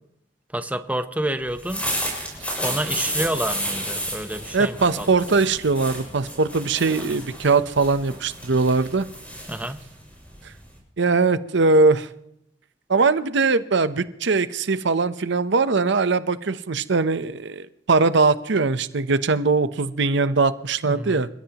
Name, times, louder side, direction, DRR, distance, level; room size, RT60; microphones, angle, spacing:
voice 1, 0.5-1.9 2.6-5.1 7.1-7.2 9.5-9.8 20.8-21.2, right 1 dB, 10° right, 9 dB, 0.8 m, -29 dB
sound 1, 1.5-10.8, equal, 5° left, 6.9 m, -32 dB
voice 2, 4.5-9.0 11.0-12.1 12.9-21.3, right 4 dB, 70° right, 13 dB, 0.8 m, -21 dB
29.0 x 16.0 x 3.0 m, 0.76 s
head